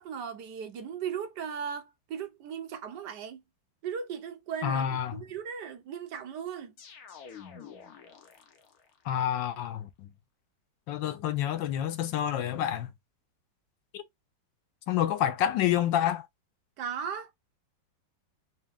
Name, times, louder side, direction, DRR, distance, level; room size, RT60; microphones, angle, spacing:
voice 1, 0.0-3.4 3.8-6.7 16.8-17.3, right 7 dB, 70° right, 1.3 m, -37 dB
voice 2, 4.6-5.2 9.0-10.1 10.9-12.9 13.9-14.0 14.9-16.3, left 10 dB, 80° left, 1.3 m, -28 dB
sound 1, 6.8-9.0, left 7 dB, 60° left, 1.2 m, -48 dB
3.9 x 2.8 x 3.4 m
omnidirectional pair, 2.0 m